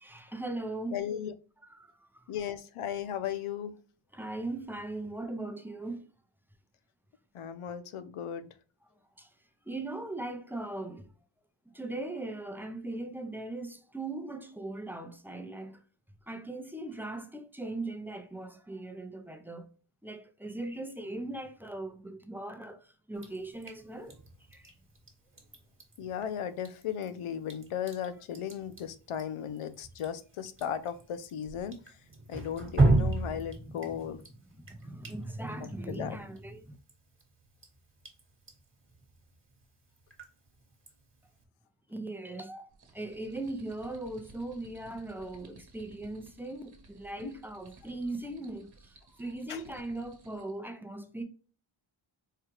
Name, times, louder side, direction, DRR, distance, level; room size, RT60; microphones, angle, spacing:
voice 1, 0.0-1.0 1.7-2.2 4.1-6.1 9.2-9.3 9.7-11.1 11.7-15.8 16.3-19.7 20.0-24.2 24.5-24.7 33.7-33.9 34.5-36.8 41.9-51.2, right 2 dB, 5° right, 0.6 m, -39 dB
voice 2, 0.9-1.3 2.3-3.7 7.3-8.5 26.0-32.0 32.3-34.2 35.9-36.2 47.2-47.3 49.5-49.6, left 9 dB, 85° left, 0.7 m, -36 dB
Drip, 23.2-41.4, right 2 dB, 25° right, 1.3 m, -36 dB
sound 1, 42.7-50.6, right 2 dB, 50° right, 1.2 m, -57 dB
4.7 x 2.4 x 3.0 m
wide cardioid pair, 85°, 49 cm